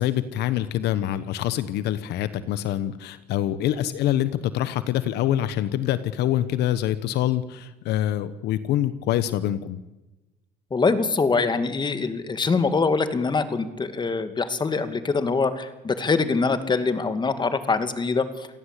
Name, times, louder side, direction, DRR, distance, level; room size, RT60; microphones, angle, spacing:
voice 1, 0.0-9.8, left 12 dB, 80° left, 14 dB, 1.2 m, -25 dB
voice 2, 10.7-18.5, left 4 dB, 25° left, 10 dB, 2.4 m, -24 dB
28.5 x 18.0 x 8.4 m, 1.1 s
cardioid pair, 110°, 17 cm